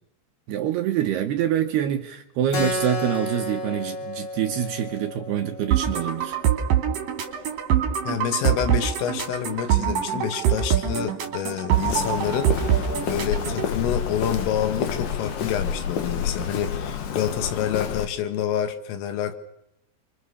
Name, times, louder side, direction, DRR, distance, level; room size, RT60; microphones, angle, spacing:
voice 1, 0.5-6.4, right 10 dB, 70° right, 6 dB, 2.6 m, -26 dB
Keyboard (musical), 2.5-7.6, left 2 dB, 40° left, 4.1 m, -33 dB
sound 1, 5.7-13.7, right 9 dB, 50° right, 3.9 m, -24 dB
voice 2, 8.1-12.8 13.1-19.3, left 9 dB, 80° left, 10 dB, 4.4 m, -28 dB
Walk footsteps, 11.7-18.1, left 7 dB, 60° left, 2.4 m, -29 dB
29.5 x 25.5 x 6.9 m, 0.84 s
omnidirectional pair, 5.8 m